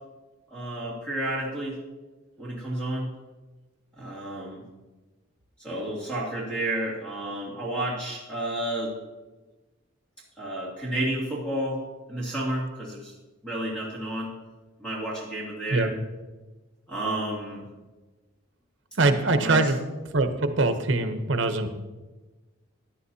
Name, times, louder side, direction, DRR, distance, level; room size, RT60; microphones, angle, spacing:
voice 1, 0.5-1.8 2.4-3.1 4.0-4.6 5.6-8.9 10.4-11.8 12.1-13.1 13.4-14.3 14.8-15.9 16.9-17.7 19.4-19.7, right 1 dB, 5° left, -6 dB, 2.6 m, -31 dB
voice 2, 19.0-19.8 20.1-21.7, right 2 dB, 65° right, 8 dB, 0.9 m, -23 dB
16.0 x 10.0 x 2.8 m, 1.2 s
head